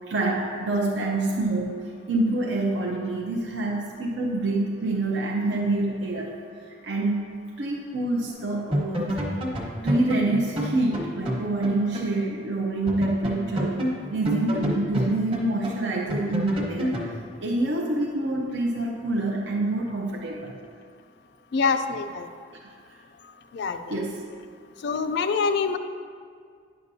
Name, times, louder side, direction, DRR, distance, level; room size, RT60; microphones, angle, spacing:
voice 1, 0.1-6.3 6.7-7.3 7.6-9.2 9.8-20.6 22.9-23.0 23.9-24.2, right 2 dB, 60° right, -1 dB, 0.6 m, -27 dB
sound 1, 8.3-8.4 8.7-12.2 12.4-12.5 12.9-17.1, equal, 30° right, 1.1 m, -29 dB
voice 2, 21.5-22.3 23.5-23.8 24.8-25.8, left 5 dB, 60° left, 8 dB, 0.4 m, -25 dB
9.6 x 6.6 x 2.7 m, 2.1 s
head